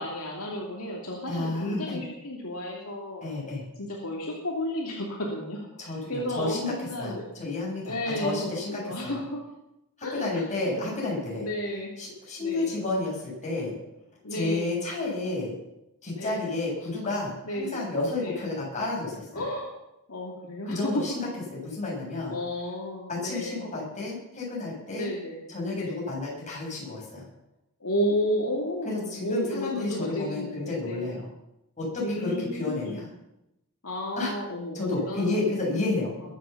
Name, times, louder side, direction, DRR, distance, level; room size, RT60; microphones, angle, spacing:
voice 1, 0.0-3.3 3.8-7.2 7.8-9.4 10.0-11.0 11.4-11.9 12.4-12.8 14.2-14.9 16.1-16.6 17.4-17.9 18.2-18.4 19.3-19.7 20.1-21.0 22.3-23.6 24.9-25.5 25.7-26.1 27.8-31.1 32.0-33.0 33.8-35.7 36.2-36.3, equal, 70° left, -1 dB, 2.8 m, -32 dB
voice 2, 1.3-2.0 3.2-3.6 5.8-6.7 7.0-9.2 10.1-11.5 12.0-13.8 14.3-15.5 16.0-19.4 20.7-21.1 21.5-22.3 23.1-25.1 25.5-27.2 28.8-31.3 31.8-33.1 34.2-34.3 34.7-36.3, left 2 dB, 35° left, -3 dB, 7.9 m, -31 dB
22.0 x 8.3 x 7.2 m, 0.89 s
head